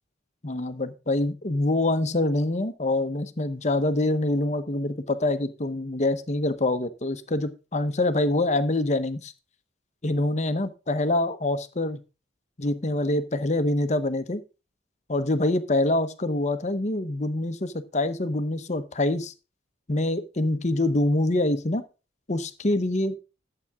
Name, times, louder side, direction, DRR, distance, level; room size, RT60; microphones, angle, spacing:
voice 1, 0.4-9.3 10.0-12.0 12.6-14.4 15.1-19.3 19.9-21.8 22.3-23.2, left 2 dB, 40° left, 10 dB, 0.9 m, -25 dB
11.5 x 7.8 x 3.6 m, 0.31 s
head